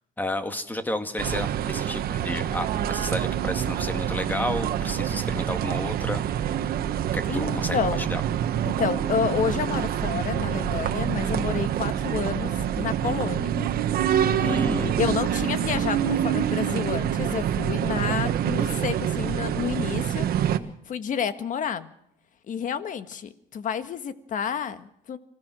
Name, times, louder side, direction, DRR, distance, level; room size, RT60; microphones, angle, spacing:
voice 1, 0.2-6.2 6.5-6.7 7.1-8.2 14.4-15.0, left 1 dB, 10° left, 8 dB, 2.1 m, -31 dB
sound 1, 1.2-20.6, right 10 dB, 65° right, 1.4 m, -26 dB
voice 2, 7.3-8.1 8.6-13.6 14.2-20.3 20.9-21.9 22.5-25.2, left 7 dB, 50° left, 11 dB, 1.6 m, -30 dB
25.5 x 16.0 x 6.3 m, 0.76 s
cardioid pair, 110°, 17 cm